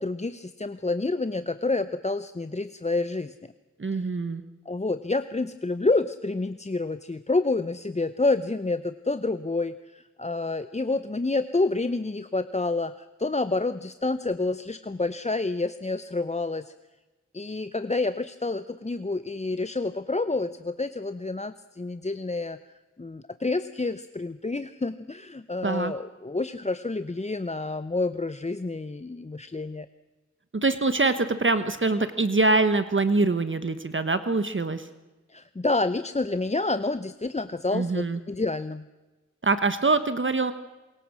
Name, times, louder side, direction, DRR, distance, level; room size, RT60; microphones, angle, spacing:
voice 1, 0.0-3.3 4.7-16.7 17.3-22.6 23.0-29.9 35.3-38.9, left 3 dB, 25° left, 12 dB, 0.7 m, -28 dB
voice 2, 3.8-4.4 25.6-25.9 30.5-34.9 37.7-38.2 39.4-40.5, right 3 dB, 40° right, 11 dB, 1.2 m, -24 dB
26.5 x 22.5 x 6.3 m, 1.2 s
wide cardioid pair, 85°, 29 cm